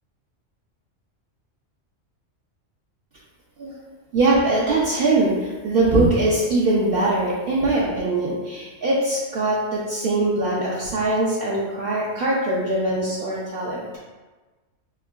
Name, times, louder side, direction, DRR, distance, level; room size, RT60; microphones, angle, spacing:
voice 1, 4.1-13.8, right 2 dB, 55° right, -6 dB, 0.7 m, -22 dB
4.4 x 2.9 x 2.4 m, 1.3 s
omnidirectional pair, 1.3 m